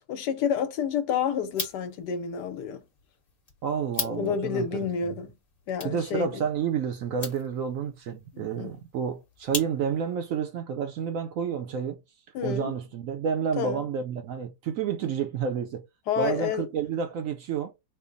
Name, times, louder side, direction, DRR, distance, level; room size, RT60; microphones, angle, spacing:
voice 1, 0.1-2.8 4.0-5.3 5.7-6.4 8.3-8.7 12.3-12.7 13.6-13.8 16.1-16.7, left 7 dB, 90° left, 1.3 m, -29 dB
sound 1, 1.4-10.2, left 3 dB, 30° left, 1.0 m, -41 dB
voice 2, 3.6-5.1 5.8-12.0 12.4-15.9 16.2-17.7, right 7 dB, 65° right, 0.8 m, -30 dB
3.4 x 2.0 x 3.8 m
omnidirectional pair, 1.7 m